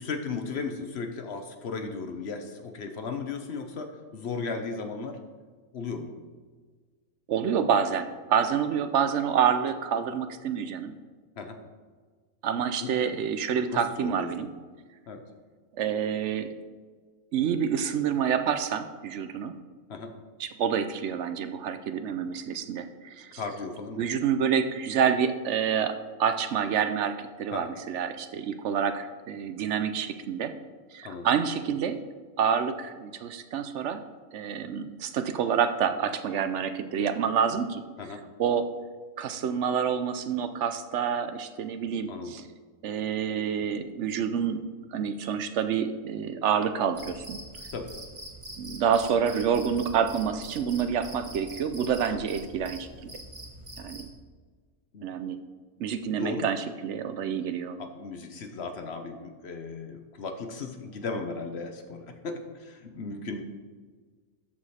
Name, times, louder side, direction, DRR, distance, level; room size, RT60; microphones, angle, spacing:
voice 1, 0.0-5.2 5.7-6.1 11.4-11.6 12.8-12.9 13.7-14.3 15.1-15.2 19.9-20.1 23.4-24.1 27.5-27.7 31.0-31.3 38.0-38.2 42.1-42.3 47.7-47.9 52.1-52.2 54.9-55.1 56.0-56.5 57.8-63.4, left 4 dB, 60° left, 6 dB, 1.0 m, -36 dB
voice 2, 7.3-10.9 12.4-14.5 15.7-16.5 17.3-19.6 20.4-23.4 24.0-30.5 30.9-32.0 32.4-34.0 34.3-37.8 38.4-38.7 39.2-42.4 42.8-44.6 44.9-47.4 48.6-53.1 53.8-54.1 55.0-55.4 55.8-57.8, right 7 dB, 70° right, 9 dB, 0.9 m, -28 dB
Cricket, 46.9-54.1, right 1 dB, 25° right, 1.4 m, -44 dB
13.0 x 4.9 x 4.2 m, 1.5 s
omnidirectional pair, 1.3 m